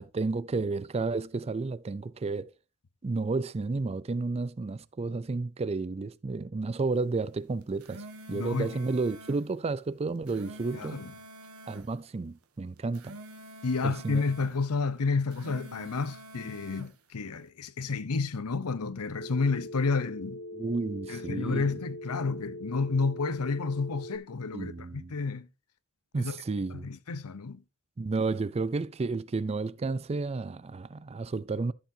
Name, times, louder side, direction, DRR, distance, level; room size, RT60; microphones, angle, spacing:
voice 1, 0.0-2.5 3.0-11.0 11.7-13.2 13.8-14.2 20.5-21.7 24.5-25.1 26.1-26.9 28.0-31.7, right 3 dB, 30° right, 0.4 m, -32 dB
sound 1, 7.6-9.4 10.1-11.9 12.8-14.6 15.2-16.9, right 1 dB, 70° right, 1.5 m, -47 dB
voice 2, 8.3-8.8 10.7-11.1 13.6-20.4 21.1-25.5 26.1-26.4 26.7-27.6, left 4 dB, 80° left, 0.7 m, -30 dB
Telephone, 19.2-24.2, left 1 dB, 55° left, 1.0 m, -41 dB
12.5 x 7.1 x 2.7 m
head